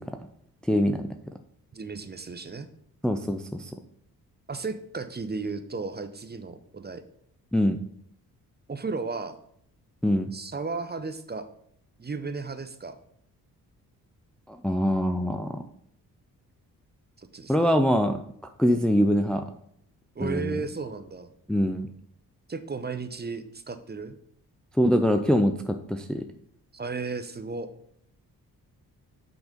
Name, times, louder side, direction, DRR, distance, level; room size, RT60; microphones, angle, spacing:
voice 1, 0.7-1.1 3.0-3.7 7.5-7.8 10.0-10.3 14.5-15.6 17.5-18.2 18.6-19.4 20.2-20.6 21.5-21.9 24.8-26.2, equal, ahead, 6 dB, 0.5 m, -23 dB
voice 2, 1.7-2.7 4.5-7.0 8.7-9.4 10.3-11.5 12.0-13.0 17.2-17.7 20.1-21.3 22.5-24.2 26.7-27.7, right 4 dB, 25° right, 10 dB, 0.9 m, -34 dB
6.0 x 5.3 x 5.1 m, 0.67 s
supercardioid pair, 60°, 39 cm